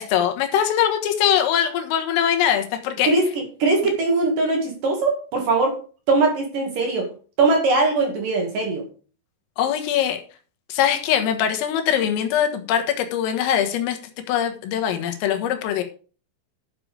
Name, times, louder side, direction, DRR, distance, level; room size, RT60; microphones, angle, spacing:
voice 1, 0.0-3.1 9.6-10.2 10.7-14.0 14.3-15.8, left 9 dB, 85° left, 5 dB, 4.1 m, -22 dB
voice 2, 3.1-5.8 6.1-7.1 7.4-8.8, right 3 dB, 50° right, 2 dB, 3.3 m, -21 dB
12.0 x 7.3 x 5.1 m, 0.38 s
omnidirectional pair, 5.9 m